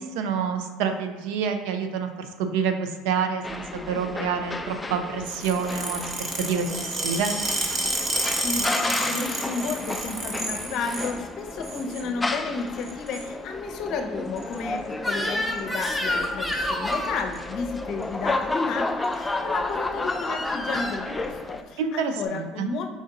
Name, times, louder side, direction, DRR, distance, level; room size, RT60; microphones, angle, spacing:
voice 1, 0.0-6.0 6.5-7.3 21.8-22.7, right 6 dB, 75° right, 6 dB, 0.5 m, -28 dB
sound 1, 3.4-21.6, left 2 dB, 15° left, 0.3 m, -32 dB
sound 2, 5.2-11.1 11.5-12.1 12.8-13.3 14.4-14.6 15.6-15.8 16.1-16.2 16.5-16.6 16.9-17.4 18.0-18.1 19.0-19.1, right 2 dB, 35° right, 1.0 m, -30 dB
voice 2, 8.0-22.9, left 4 dB, 60° left, 4 dB, 0.6 m, -32 dB
Crying sobbing / Screech, 15.0-17.2 19.1-19.4 20.1-21.0, left 1 dB, 5° right, 0.8 m, -29 dB
4.8 x 2.6 x 3.9 m, 1.4 s
hypercardioid pair, 80°, 0 cm